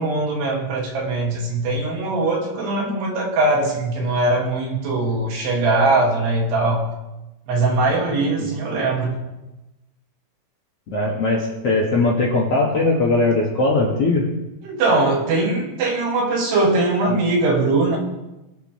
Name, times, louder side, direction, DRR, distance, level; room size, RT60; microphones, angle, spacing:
voice 1, 0.0-6.9 7.5-9.2 14.6-18.0, right 2 dB, 75° right, -1 dB, 4.1 m, -21 dB
voice 2, 10.9-14.2, left 2 dB, 50° left, -3 dB, 1.9 m, -19 dB
21.5 x 8.1 x 3.2 m, 1.0 s
omnidirectional pair, 4.9 m